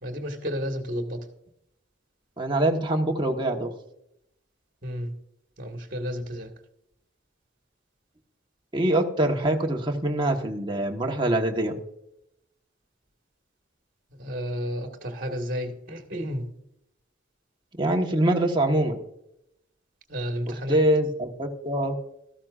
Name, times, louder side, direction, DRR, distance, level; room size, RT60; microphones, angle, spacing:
voice 1, 0.0-1.2 4.8-5.1 5.6-6.5 14.2-16.5 20.1-20.8, equal, 45° right, 3 dB, 1.7 m, -31 dB
voice 2, 2.4-3.7 8.7-11.8 17.8-19.0 20.5-22.0, right 1 dB, 25° right, 1 dB, 1.2 m, -24 dB
13.5 x 13.0 x 2.5 m, 0.79 s
head